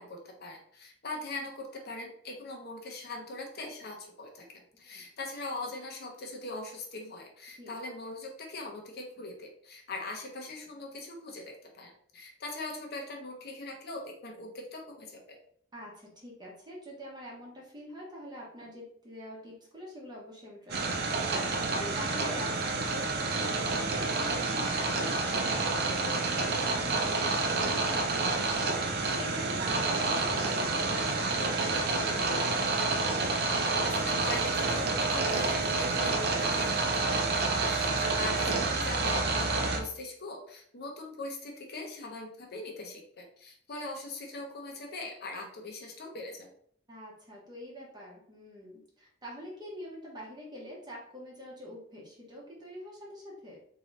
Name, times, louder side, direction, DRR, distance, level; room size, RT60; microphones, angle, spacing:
voice 1, 0.0-4.5 4.8-15.2 33.8-46.5, left 2 dB, 55° left, 1 dB, 0.8 m, -41 dB
voice 2, 15.7-32.6 46.9-53.6, equal, 20° right, -3 dB, 0.9 m, -45 dB
sound 1, 20.7-39.8, right 3 dB, 55° right, 0.6 m, -29 dB
3.7 x 2.8 x 3.2 m, 0.63 s
head